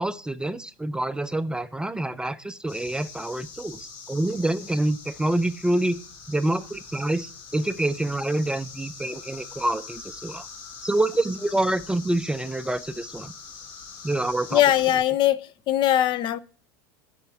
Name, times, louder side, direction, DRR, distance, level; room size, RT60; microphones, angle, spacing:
voice 1, 0.0-6.0 6.3-10.5 10.8-13.3 14.0-14.6, right 1 dB, 5° right, 0.4 m, -27 dB
sound 1, 2.7-15.0, left 5 dB, 60° left, 2.5 m, -43 dB
voice 2, 14.5-15.4 15.7-16.4, left 12 dB, 45° left, 0.5 m, -20 dB
11.0 x 4.4 x 7.1 m
supercardioid pair, 110°, 12 cm